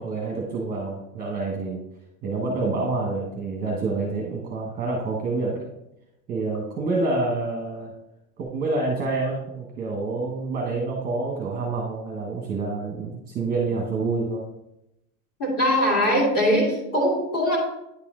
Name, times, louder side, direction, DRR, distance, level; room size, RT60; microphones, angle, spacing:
voice 1, 0.0-1.8 2.2-5.7 6.3-7.9 8.4-14.4, right 3 dB, 20° right, 0 dB, 1.0 m, -27 dB
voice 2, 15.4-17.6, equal, 30° left, -2 dB, 2.2 m, -21 dB
9.8 x 4.2 x 3.7 m, 0.87 s
supercardioid pair, 160°, 48 cm